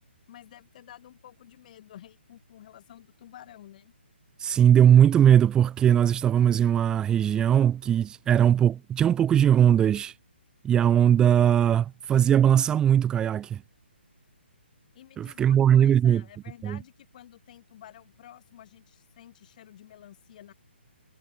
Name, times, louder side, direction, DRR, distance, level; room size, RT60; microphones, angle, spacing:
voice 1, 0.3-3.9 14.9-20.5, left 11 dB, 45° left, 7.8 m, -50 dB
voice 2, 4.4-10.1 10.6-13.6 15.2-16.2 16.6-16.8, right 9 dB, 10° right, 0.9 m, -20 dB
hypercardioid pair, 145°, 6 cm